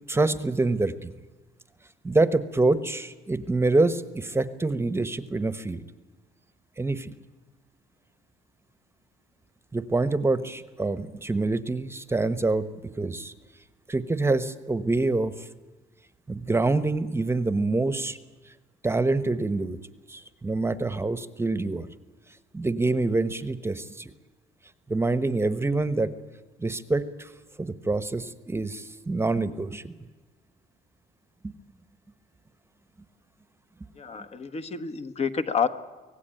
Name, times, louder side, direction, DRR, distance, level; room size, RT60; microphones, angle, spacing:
voice 1, 0.1-1.1 2.0-5.8 6.8-7.1 9.7-12.7 13.0-13.3 13.9-15.5 16.3-18.2 18.8-19.8 20.1-21.9 22.5-24.1 24.9-26.1 26.6-27.3 27.6-29.9, right 2 dB, 15° right, 13 dB, 1.1 m, -26 dB
voice 2, 34.0-35.7, left 6 dB, 40° left, 10 dB, 1.3 m, -28 dB
25.0 x 18.0 x 9.0 m, 1.3 s
cardioid pair, 110°, 17 cm